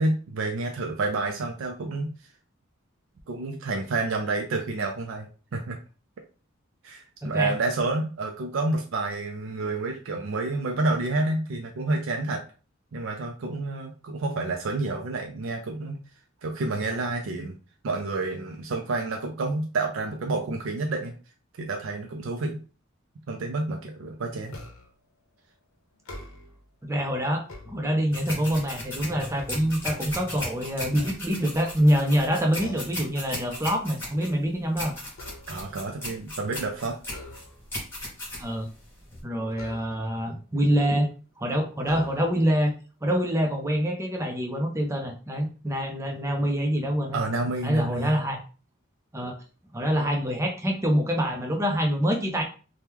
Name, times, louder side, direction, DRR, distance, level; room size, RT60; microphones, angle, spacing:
voice 1, 0.0-2.1 3.3-5.3 5.5-5.8 6.8-12.4 12.9-16.0 16.4-17.5 17.8-21.1 21.6-22.6 23.3-24.6 35.5-37.0 47.1-48.1, right 2 dB, 70° right, 3 dB, 0.4 m, -29 dB
voice 2, 7.2-7.6 26.8-34.9 38.4-38.7 39.2-41.1 41.4-42.7 43.0-47.2 47.6-48.4 49.1-49.4 49.7-52.4, equal, 15° right, 2 dB, 0.5 m, -25 dB
sound 1, 24.5-25.1 25.9-26.7 27.2-28.3 28.8-30.3 30.9-31.8 32.6-33.1 33.5-33.7 34.1-35.8 37.0-37.8 39.5-40.3 41.1-41.2 41.8-42.6, left 1 dB, 80° left, 0.8 m, -46 dB
sound 2, 28.1-39.2, left 1 dB, 10° left, 1.3 m, -37 dB
2.9 x 2.2 x 3.5 m, 0.36 s
head